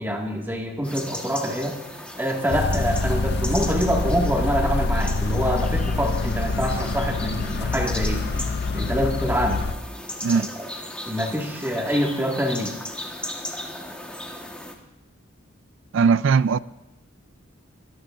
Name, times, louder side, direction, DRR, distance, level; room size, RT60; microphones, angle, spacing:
voice 1, 0.0-1.8 2.2-8.2 8.7-9.7 10.3-10.7 11.1-12.7, equal, 10° right, 1.8 m, -25 dB
sound 1, 0.8-14.7, left 1 dB, 5° left, 1.3 m, -37 dB
sound 2, 2.5-9.7, left 3 dB, 50° left, 0.5 m, -25 dB
voice 2, 15.9-16.6, right 5 dB, 65° right, 0.4 m, -19 dB
22.5 x 14.0 x 2.5 m
head